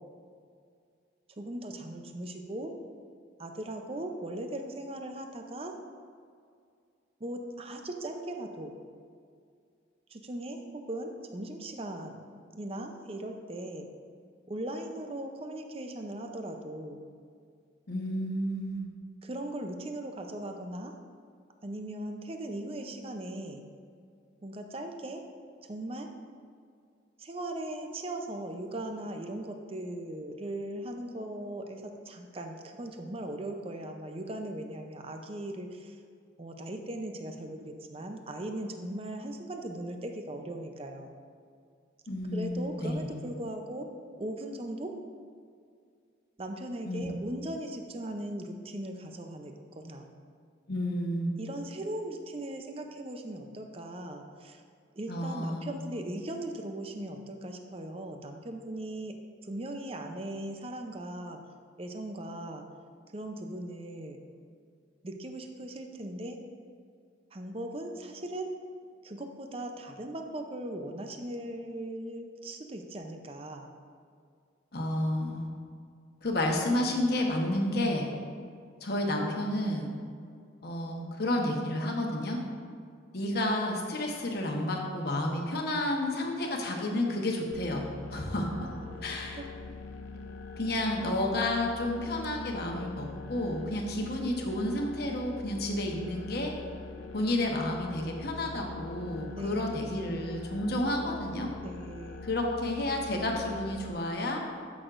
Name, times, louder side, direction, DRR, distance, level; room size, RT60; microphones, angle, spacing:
voice 1, 1.3-2.7 3.4-5.7 7.2-8.8 10.1-13.9 14.5-17.0 19.2-20.9 21.6-23.6 24.4-25.2 25.6-26.1 27.2-36.0 36.4-41.1 42.3-43.9 44.2-45.0 46.4-50.1 51.4-54.6 55.0-59.2 59.4-61.4 61.8-62.6 63.1-64.2 65.0-66.4 67.3-68.6 69.0-73.7 88.4-89.1 89.4-89.5 99.3-99.7 101.6-102.3, right 1 dB, 30° right, 4 dB, 0.6 m, -39 dB
voice 2, 17.9-18.9 42.1-43.1 46.8-47.2 50.7-51.3 55.1-55.7 74.7-75.5 76.2-78.1 78.8-79.9 80.6-82.4 83.1-87.8 88.1-88.7 89.0-89.4 90.6-96.5 97.1-101.5 102.2-104.4, left 1 dB, 55° left, 1 dB, 1.1 m, -31 dB
sound 1, 87.5-103.9, left 4 dB, 90° left, 0.6 m, -44 dB
12.5 x 6.2 x 2.5 m, 2.3 s
head